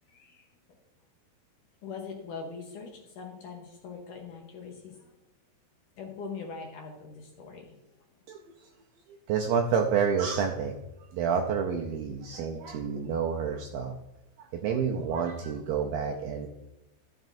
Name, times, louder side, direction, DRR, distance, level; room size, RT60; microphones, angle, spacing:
voice 1, 0.1-0.5 1.8-5.1 6.0-7.8, left 5 dB, 70° left, 1 dB, 2.1 m, -42 dB
voice 2, 9.3-10.7 11.1-13.9 14.4-16.5, right 6 dB, 90° right, 2 dB, 2.0 m, -29 dB
13.5 x 7.3 x 2.6 m, 0.95 s
omnidirectional pair, 4.8 m